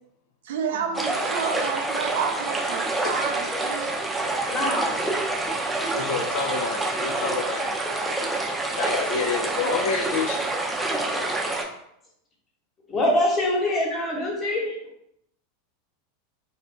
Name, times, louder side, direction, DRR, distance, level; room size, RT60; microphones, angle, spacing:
voice 1, 0.4-3.9, right 7 dB, 70° right, 5 dB, 0.5 m, -30 dB
sound 1, 0.9-11.6, right 2 dB, 5° right, 0.6 m, -27 dB
voice 2, 4.5-5.0 12.9-14.8, left 1 dB, 25° left, -2 dB, 1.2 m, -24 dB
voice 3, 5.9-7.7 8.8-10.4, left 5 dB, 65° left, 3 dB, 0.5 m, -28 dB
2.8 x 2.4 x 3.3 m, 0.76 s
hypercardioid pair, 100°, 0 cm